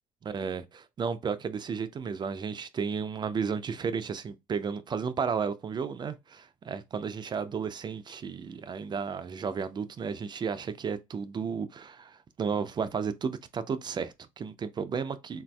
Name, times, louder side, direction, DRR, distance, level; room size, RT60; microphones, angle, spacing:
voice 1, 0.3-15.4, right 6 dB, 30° right, 0.3 m, -33 dB
3.8 x 2.6 x 2.2 m
cardioid pair, 120°, 16 cm